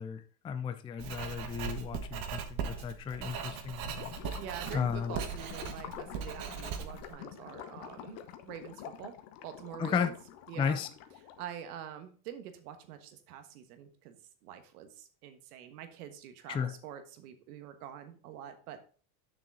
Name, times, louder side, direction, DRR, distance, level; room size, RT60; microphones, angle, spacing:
voice 1, 0.0-4.1 4.7-5.2 9.8-10.1 10.5-10.9 16.5-16.7, left 7 dB, 15° left, 0.3 m, -34 dB
Writing, 1.0-7.1, right 7 dB, 50° right, 1.4 m, -39 dB
Gurgling / Liquid, 3.8-11.5, left 10 dB, 65° left, 1.1 m, -47 dB
voice 2, 4.4-9.1 9.4-10.1 10.5-10.8 11.4-14.2 14.4-18.8, right 9 dB, 80° right, 1.4 m, -46 dB
7.5 x 6.1 x 3.9 m
supercardioid pair, 110°, 44 cm